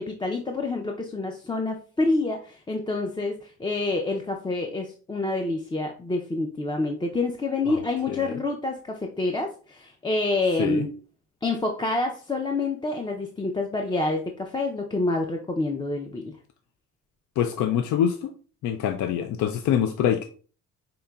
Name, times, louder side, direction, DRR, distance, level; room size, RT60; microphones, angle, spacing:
voice 1, 0.0-10.9 11.4-16.4, left 2 dB, 15° left, 2 dB, 0.4 m, -27 dB
voice 2, 8.1-8.4 10.6-10.9 17.4-18.3 18.6-20.2, left 9 dB, 75° left, 7 dB, 0.5 m, -25 dB
5.2 x 2.8 x 2.3 m, 0.40 s
cardioid pair, 90°, 30 cm